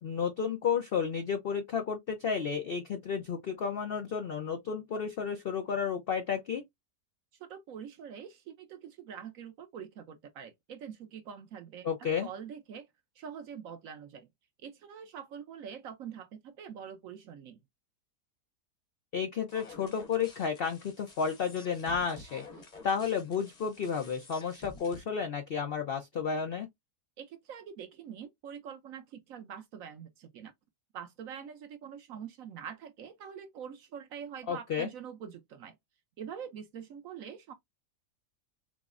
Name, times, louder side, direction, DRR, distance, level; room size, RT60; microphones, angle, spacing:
voice 1, 0.0-6.6 11.8-12.3 19.1-22.4 22.8-26.7 34.5-34.9, left 6 dB, 75° left, 0.5 m, -32 dB
voice 2, 7.4-12.9 13.2-14.3 14.6-17.6 27.2-30.5 30.9-35.7 36.2-37.5, right 8 dB, 65° right, 1.0 m, -45 dB
sound 1, 19.5-25.0, left 3 dB, 35° left, 0.7 m, -51 dB
6.0 x 2.0 x 2.4 m
omnidirectional pair, 1.7 m